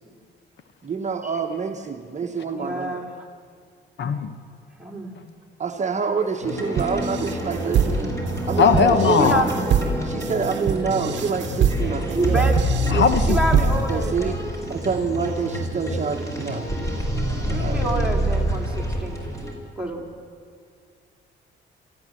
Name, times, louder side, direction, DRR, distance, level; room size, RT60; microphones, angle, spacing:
voice 1, 0.8-3.0 5.6-8.1 8.5-9.3 10.0-12.5 12.9-14.4 14.7-16.7 17.5-17.9, right 5 dB, 35° right, 4 dB, 1.2 m, -27 dB
voice 2, 2.5-3.2 4.8-5.2 9.0-9.5 12.1-12.6 13.3-14.4 17.3-19.2 19.8-20.0, right 1 dB, 5° right, -1 dB, 3.9 m, -28 dB
voice 3, 4.0-4.3 8.6-9.4 12.9-13.4, left 6 dB, 65° left, 10 dB, 1.2 m, -18 dB
sound 1, 6.4-19.5, right 1 dB, 15° left, 4.8 m, -26 dB
sound 2, 6.8-14.1, right 8 dB, 65° right, 1.0 m, -25 dB
26.0 x 13.5 x 7.8 m, 2.2 s
cardioid pair, 90°, 20 cm